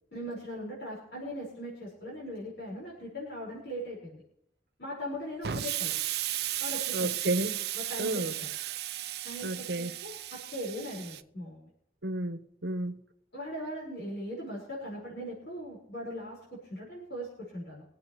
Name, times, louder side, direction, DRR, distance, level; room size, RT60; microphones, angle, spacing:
voice 1, 0.1-4.2 4.8-6.1 6.6-7.1 7.7-8.5 9.2-11.7 13.3-17.8, equal, 80° left, 5.1 m, -40 dB
Explosion, 5.4-11.2, right 13 dB, 60° right, 0.5 m, -35 dB
voice 2, 6.9-7.6 8.0-8.3 9.4-9.9 12.0-13.0, right 1 dB, 80° right, 1.1 m, -32 dB
24.5 x 8.3 x 3.2 m
head